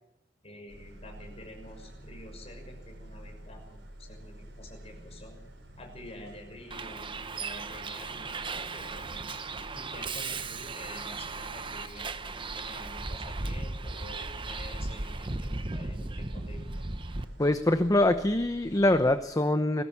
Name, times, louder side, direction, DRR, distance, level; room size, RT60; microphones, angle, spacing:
voice 1, 0.4-5.4 5.8-9.4 9.7-16.7, left 1 dB, 35° left, 3 dB, 6.2 m, -48 dB
sound 1, 0.7-19.2, right 1 dB, 90° right, 6.9 m, -49 dB
Bus, 6.7-17.2, right 3 dB, 30° right, 0.9 m, -36 dB
voice 2, 17.4-19.8, left 1 dB, 20° left, 9 dB, 0.8 m, -24 dB
21.0 x 17.0 x 7.3 m, 0.89 s
head